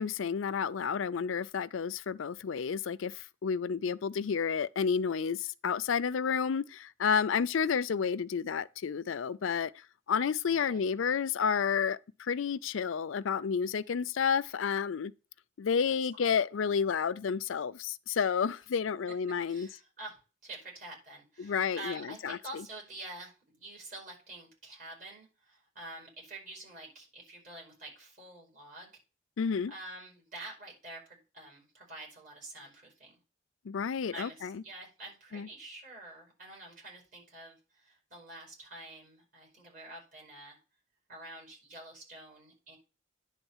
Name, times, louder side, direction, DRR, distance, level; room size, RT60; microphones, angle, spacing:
voice 1, 0.0-9.7 10.1-15.1 15.6-19.7 21.4-22.4 29.4-29.7 33.6-34.6 35.3-35.5, left 6 dB, 90° left, 0.4 m, -30 dB
voice 2, 10.4-10.8 15.9-16.3 19.4-28.9 29.7-33.1 34.1-40.6 41.1-42.8, right 2 dB, 45° right, 5.1 m, -47 dB
10.0 x 3.7 x 7.2 m
head